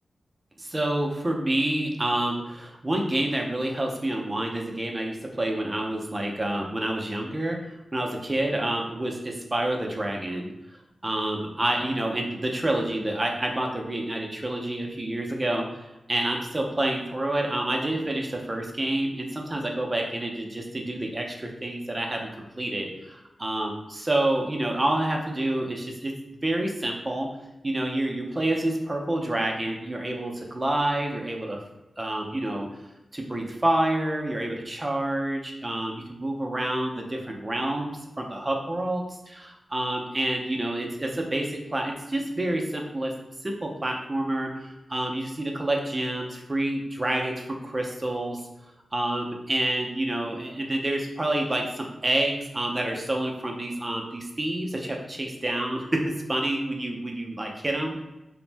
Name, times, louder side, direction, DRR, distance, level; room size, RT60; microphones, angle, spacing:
voice 1, 0.6-10.5 11.0-27.3 27.6-31.6 32.0-32.7 33.1-43.1 43.4-48.4 48.9-58.0, right 1 dB, 20° right, 1 dB, 0.4 m, -28 dB
2.5 x 2.0 x 3.2 m, 0.99 s
wide cardioid pair, 110°, 0 cm